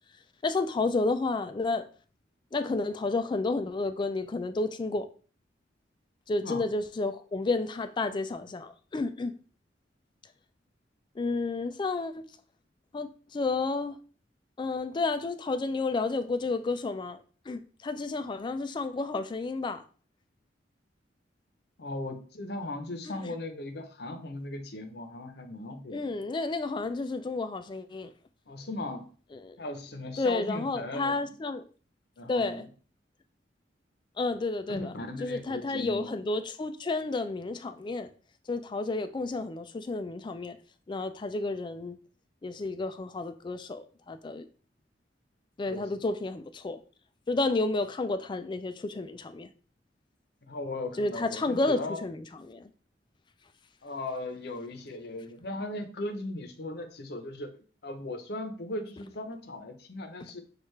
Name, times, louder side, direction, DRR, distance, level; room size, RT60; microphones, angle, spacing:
voice 1, 0.4-1.8 2.5-5.1 6.3-9.3 11.2-12.2 12.9-14.0 14.6-19.8 25.9-28.1 29.3-29.6 30.2-31.6 32.3-32.7 34.2-34.9 35.2-38.1 38.5-40.6 40.9-42.0 42.4-44.5 45.6-46.8 47.3-49.5 51.0-52.7, left 3 dB, 25° left, 10 dB, 0.3 m, -31 dB
voice 2, 21.8-26.1 28.5-29.1 29.6-31.3 32.2-32.6 34.7-36.2 45.7-45.9 50.5-52.0 53.8-60.4, left 2 dB, 60° left, 6 dB, 0.7 m, -38 dB
6.3 x 2.4 x 3.2 m, 0.39 s
head